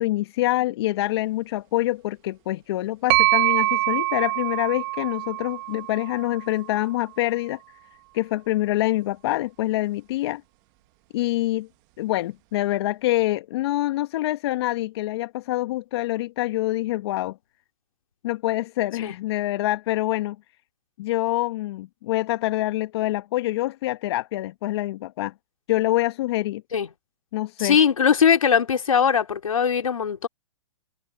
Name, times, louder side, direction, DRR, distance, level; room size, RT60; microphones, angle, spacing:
voice 1, 0.0-7.6 8.1-10.4 11.1-11.7 12.0-17.4 18.2-20.4 21.0-25.3 25.7-26.6 27.3-27.8, left 16 dB, 50° left, 1.4 m, -25 dB
sound 1, 3.1-6.9, right 22 dB, 35° right, 1.5 m, -24 dB
voice 2, 27.6-30.3, left 7 dB, 80° left, 3.1 m, -20 dB
hypercardioid pair, 130°, 17 cm